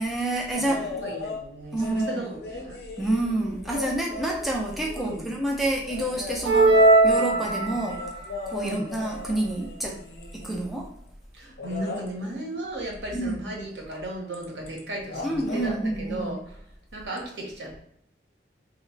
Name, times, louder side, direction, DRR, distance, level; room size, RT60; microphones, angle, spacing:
voice 1, 0.0-0.9 1.7-2.2 3.0-8.0 8.5-10.0 10.4-10.9 13.1-13.4 15.2-16.4, right 1 dB, ahead, -2 dB, 0.5 m, -28 dB
sound 1, 0.5-1.4 1.8-5.3 5.8-10.7 11.6-12.1 13.9-14.0 14.3-14.8 15.1-15.8 17.2-17.3, left 3 dB, 65° left, 0.6 m, -37 dB
voice 2, 0.6-2.8 4.9-5.3 8.6-9.0 11.3-16.6 16.9-17.8, right 1 dB, 85° right, -1 dB, 1.1 m, -35 dB
sound 2, 6.4-8.1, right 2 dB, 65° right, 0.6 m, -19 dB
3.0 x 2.1 x 3.9 m, 0.72 s
head